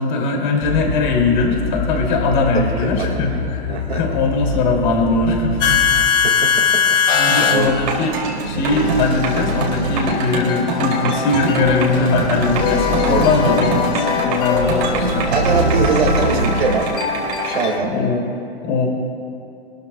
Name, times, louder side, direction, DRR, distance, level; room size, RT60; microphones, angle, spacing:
voice 1, 0.0-5.8 7.1-8.2 8.4-13.7 13.9-15.3 16.1-16.2 17.9-18.2 18.6-18.9, left 3 dB, 45° left, 1 dB, 2.6 m, -20 dB
sound 1, 0.6-8.1 8.7-17.8, left 6 dB, 15° left, 0.5 m, -22 dB
voice 2, 2.5-3.4 3.7-4.0 6.0-6.8 7.1-7.8 13.1-13.3 15.3-16.9 17.4-18.0, right 5 dB, 75° right, 1 dB, 2.0 m, -23 dB
sound 2, 7.3-17.6, right 4 dB, 40° right, 2.7 m, -26 dB
sound 3, 7.6-17.1, right 1 dB, 90° right, 1.7 m, -25 dB
25.0 x 13.0 x 2.2 m, 2.6 s
hypercardioid pair, 145°, 31 cm